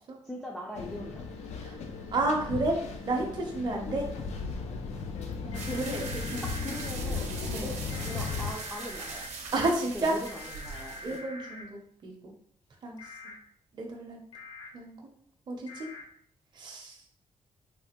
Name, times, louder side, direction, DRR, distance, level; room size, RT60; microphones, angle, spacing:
voice 1, 0.2-1.3 3.9-4.0 5.7-6.1 6.4-7.3 7.6-7.8 8.1-9.3 9.6-9.7 9.9-11.2, left 1 dB, 10° left, -3 dB, 0.4 m, -40 dB
sound 1, 0.7-8.5, left 5 dB, 75° left, 0.4 m, -36 dB
voice 2, 2.1-2.8 3.0-4.0 5.4-6.4 7.4-7.7 9.5-10.2 11.0-12.3 12.8-13.0 13.7-14.2 14.7-15.0 15.5-15.9 16.6-17.0, right 2 dB, 40° right, 0 dB, 0.6 m, -31 dB
sound 2, 5.5-6.9 7.9-9.3 10.3-11.6 13.0-13.3 14.3-14.7 15.7-16.0, left 2 dB, 55° left, 0.9 m, -44 dB
sound 3, 5.5-11.2, right 4 dB, 90° right, 0.6 m, -42 dB
3.2 x 2.3 x 2.9 m, 0.65 s
cardioid pair, 120°, 11 cm